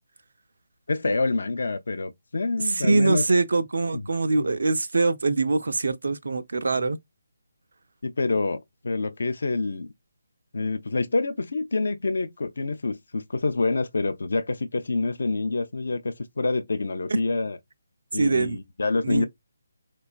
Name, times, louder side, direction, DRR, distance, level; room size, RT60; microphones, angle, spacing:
voice 1, 0.9-3.2 3.9-4.0 4.4-4.6 8.0-9.9 10.5-17.6 18.1-19.3, left 3 dB, 55° left, 0.4 m, -27 dB
voice 2, 2.6-7.0 17.1-17.2 18.2-18.6 19.0-19.3, right 3 dB, 55° right, 0.3 m, -23 dB
4.1 x 2.2 x 2.4 m
figure-of-eight pair, 145°, 0 cm